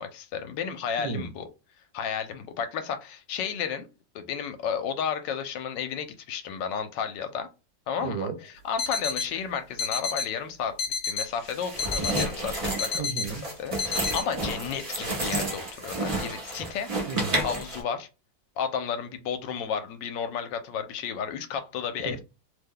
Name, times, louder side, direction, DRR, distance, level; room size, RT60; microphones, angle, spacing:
voice 1, 0.0-1.5 1.9-3.9 4.1-7.5 7.9-8.3 8.6-10.8 11.1-13.1 13.6-16.9 17.4-18.1 18.6-22.2, left 7 dB, 80° left, 1.2 m, -32 dB
voice 2, 1.0-1.3 8.0-8.4 12.9-13.5 17.1-17.4 22.0-22.2, right 5 dB, 70° right, 1.0 m, -33 dB
sound 1, 8.8-9.3 9.8-10.3 10.8-11.3 11.8-12.3 12.8-13.3 13.8-14.2, left 5 dB, 50° left, 1.0 m, -30 dB
sound 2, 11.4-17.8, right 1 dB, 35° right, 0.5 m, -31 dB
3.1 x 2.1 x 3.7 m
omnidirectional pair, 2.0 m